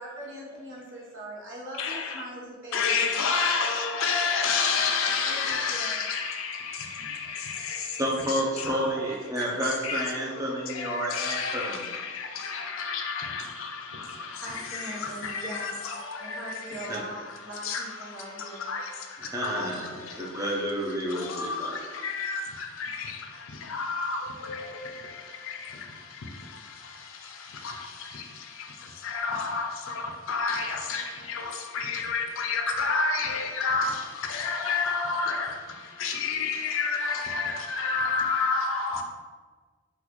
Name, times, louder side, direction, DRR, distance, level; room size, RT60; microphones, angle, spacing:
voice 1, 0.0-2.9 5.2-6.0 14.3-15.7 16.2-18.7, right 1 dB, 60° right, -5 dB, 0.9 m, -40 dB
voice 2, 1.8-2.2 2.7-8.0 8.6-8.9 9.4-17.0 17.6-17.8 18.1-20.5 21.1-39.0, left 4 dB, 65° left, 3 dB, 0.4 m, -31 dB
voice 3, 8.0-12.0 16.9-17.0 19.2-21.8, equal, 15° right, -3 dB, 0.5 m, -30 dB
3.8 x 2.3 x 3.0 m, 1.5 s
head